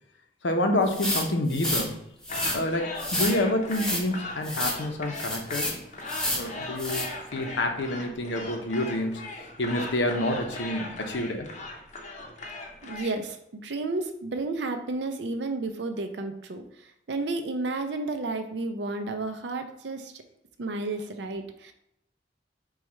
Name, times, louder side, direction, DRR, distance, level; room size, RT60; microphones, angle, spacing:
voice 1, 0.4-2.0 2.5-5.7 6.3-9.1 9.6-11.5, left 1 dB, 80° left, 4 dB, 0.7 m, -28 dB
sound 1, 0.9-1.9 2.2-2.6 3.0-3.4 3.7-4.0 4.4-4.8 5.1-5.8 6.1-6.5 6.8-7.1, left 1 dB, 5° left, 0.8 m, -29 dB
sound 2, 2.3-13.1, left 2 dB, 40° left, 0.7 m, -38 dB
voice 2, 12.8-20.2 20.6-21.7, right 2 dB, 70° right, 7 dB, 0.5 m, -32 dB
4.7 x 2.3 x 4.2 m, 0.78 s
head